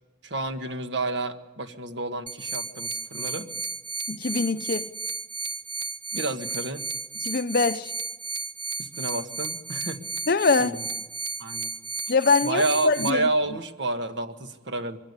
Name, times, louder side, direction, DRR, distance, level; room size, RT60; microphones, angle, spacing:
voice 1, 0.2-3.5 6.1-6.8 8.8-10.0 10.6-10.8 11.4-11.7 12.4-15.0, right 2 dB, 70° right, 1.7 m, -29 dB
sound 1, 2.3-13.1, right 3 dB, 25° right, 1.0 m, -33 dB
voice 2, 4.1-4.9 7.2-7.9 10.3-10.8 12.1-13.3, left 4 dB, 55° left, 0.7 m, -23 dB
23.5 x 16.5 x 9.9 m
head